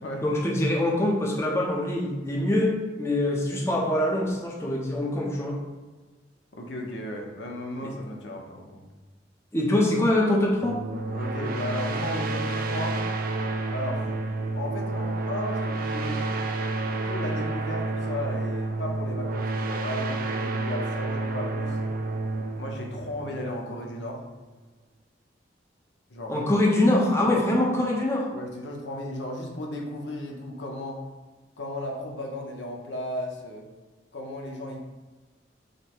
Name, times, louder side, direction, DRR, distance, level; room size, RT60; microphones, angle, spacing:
voice 1, 0.2-2.7 3.0-5.6 9.5-10.8 26.3-28.2, left 1 dB, 15° left, -3 dB, 0.7 m, -24 dB
voice 2, 6.5-8.9 11.1-13.0 13.7-14.1 14.5-16.3 17.0-21.8 22.6-24.2 26.1-26.3 27.2-27.4 28.3-31.0 31.6-33.7 34.1-34.8, left 1 dB, 80° left, 0 dB, 0.8 m, -35 dB
sound 1, 10.6-24.0, right 2 dB, 50° right, 0.3 m, -30 dB
5.2 x 2.1 x 4.4 m, 1.3 s
head